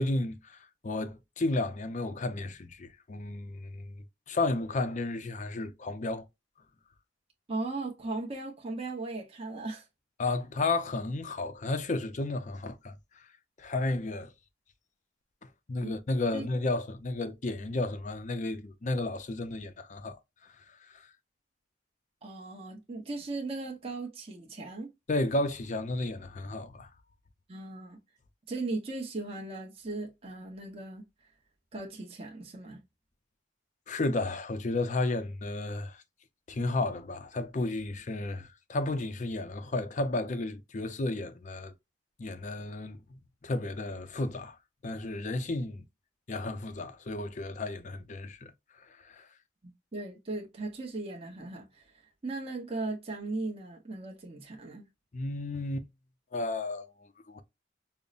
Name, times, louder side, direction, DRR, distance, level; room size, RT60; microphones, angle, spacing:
voice 1, 0.0-3.9 4.3-6.3 10.2-13.3 13.6-14.3 15.7-21.1 25.1-26.9 33.9-36.0 36.5-41.7 42.2-44.6 44.8-45.8 46.3-48.5 48.9-49.3 55.1-55.9 56.3-57.4, left 2 dB, 40° left, 0.5 m, -33 dB
voice 2, 7.5-9.9 15.8-15.9 16.3-16.5 22.2-24.9 27.5-28.0 28.5-31.0 31.7-32.8 49.6-51.9 52.2-54.9, right 2 dB, 30° right, 0.8 m, -37 dB
5.3 x 2.1 x 2.4 m
head